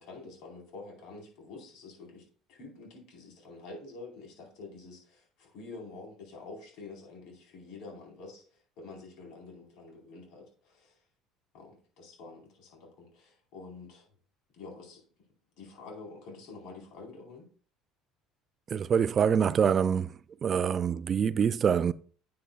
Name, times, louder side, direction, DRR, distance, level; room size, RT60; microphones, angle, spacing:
voice 1, 0.0-11.0 11.5-14.1 14.5-15.0 15.6-17.5, left 3 dB, 70° left, 4.6 m, -47 dB
voice 2, 18.7-21.9, right 7 dB, 35° right, 0.4 m, -26 dB
10.0 x 8.8 x 2.4 m
cardioid pair, 125°, 0 cm